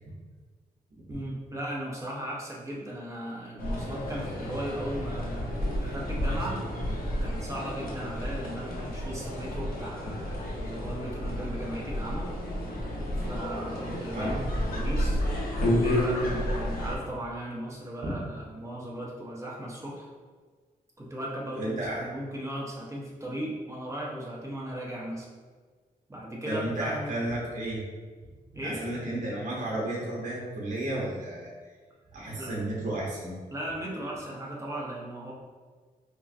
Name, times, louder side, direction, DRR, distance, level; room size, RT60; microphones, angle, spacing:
voice 1, 1.1-6.6 7.2-12.3 13.3-15.2 15.7-20.1 21.0-25.3 26.1-27.2 28.5-28.8 32.4-32.5 33.5-35.3, right 1 dB, 20° right, -4 dB, 1.0 m, -37 dB
sound 1, 3.6-16.9, equal, 75° left, 0.8 m, -31 dB
voice 2, 21.6-22.1 26.4-27.8 28.6-31.5 32.1-33.3, right 1 dB, 55° right, -4 dB, 1.0 m, -32 dB
5.2 x 2.2 x 2.7 m, 1.5 s
cardioid pair, 95°, 16 cm